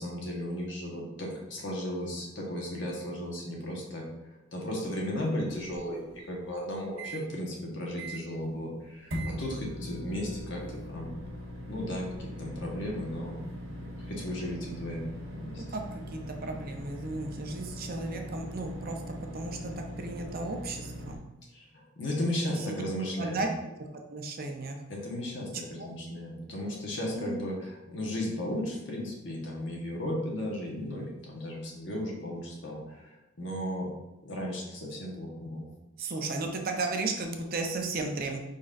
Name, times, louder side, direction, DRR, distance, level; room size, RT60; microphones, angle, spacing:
voice 1, 0.0-4.0 4.5-11.2 11.7-13.4 14.0-15.6 21.5-23.4 24.9-33.1 33.4-33.9 34.2-35.7, left 1 dB, 65° left, -2 dB, 1.2 m, -35 dB
sound 1, 5.5-7.2 7.7-7.8 8.0-8.4 9.1-21.2, equal, 80° right, 1.1 m, -41 dB
voice 2, 15.6-19.0 19.3-21.2 22.5-22.8 23.2-23.7 24.1-24.8 25.5-25.9 27.1-27.3 36.0-38.4, right 3 dB, 50° right, 3 dB, 0.6 m, -35 dB
5.2 x 4.0 x 2.5 m, 1.0 s
head